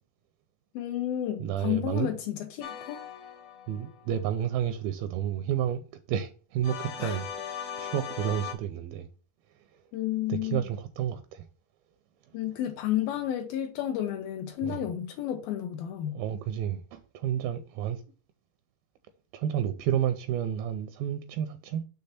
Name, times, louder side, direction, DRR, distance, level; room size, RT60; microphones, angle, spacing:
voice 1, 0.7-3.0 7.0-7.2 9.9-10.6 12.3-16.2, left 11 dB, 80° left, 2.3 m, -31 dB
voice 2, 1.4-2.1 3.7-5.8 6.1-9.1 10.3-11.4 14.6-14.8 16.1-18.0 19.3-21.8, right 10 dB, 85° right, 2.1 m, -31 dB
sound 1, 2.6-4.1 6.6-8.5, left 8 dB, 60° left, 1.9 m, -39 dB
6.6 x 3.5 x 5.8 m
omnidirectional pair, 4.6 m